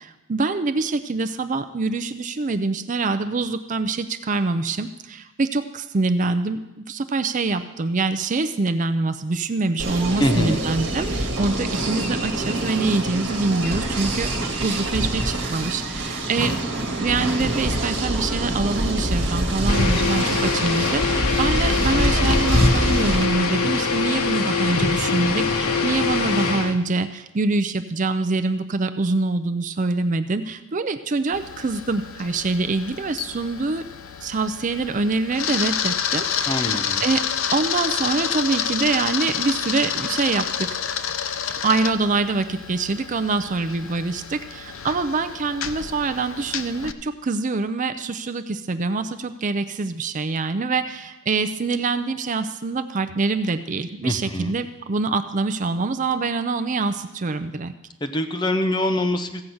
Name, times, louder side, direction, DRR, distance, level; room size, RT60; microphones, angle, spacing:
voice 1, 0.0-14.3 14.6-33.9 34.2-37.3 37.5-40.8 41.6-57.7, right 3 dB, 35° right, 11 dB, 0.4 m, -25 dB
sound 1, 9.8-23.3, right 1 dB, 50° right, 1.9 m, -25 dB
voice 2, 10.2-10.6 36.5-37.0 54.0-54.5 58.0-59.4, left 1 dB, 20° left, 7 dB, 0.6 m, -24 dB
sound 2, 19.7-26.8, left 4 dB, 80° left, 1.1 m, -23 dB
Camera, 31.3-46.9, left 8 dB, 65° left, 0.6 m, -29 dB
15.0 x 5.7 x 7.8 m, 0.98 s
head